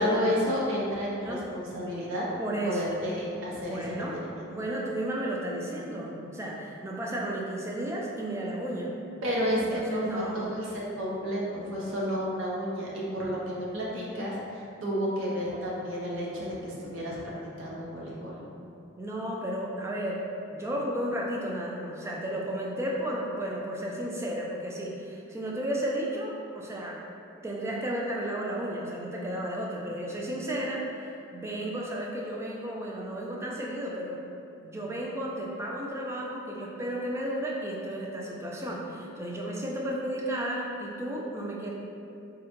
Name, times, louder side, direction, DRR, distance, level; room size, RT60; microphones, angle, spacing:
voice 1, 0.0-2.3 2.6-4.5 9.2-10.2 10.5-17.2 17.6-18.4, equal, 75° right, -5 dB, 0.7 m, -31 dB
voice 2, 2.4-2.8 3.6-4.2 4.5-9.0 9.7-10.5 19.0-20.3 20.5-27.0 27.4-30.8 31.3-34.2 34.6-41.7, right 1 dB, 15° right, -3 dB, 0.3 m, -33 dB
3.6 x 2.1 x 2.9 m, 2.6 s
head